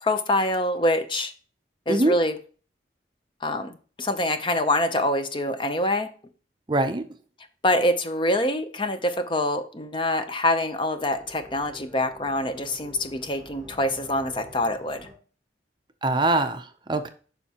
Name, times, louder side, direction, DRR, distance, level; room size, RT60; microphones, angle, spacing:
voice 1, 0.0-1.3 1.9-2.3 3.4-3.7 4.0-6.1 7.6-15.1, left 1 dB, 30° left, 8 dB, 0.6 m, -25 dB
voice 2, 6.7-7.0 16.0-17.1, right 2 dB, 25° right, 7 dB, 0.5 m, -23 dB
sound 1, 11.0-15.1, equal, 5° left, 4.1 m, -47 dB
8.7 x 5.6 x 2.9 m, 0.39 s
head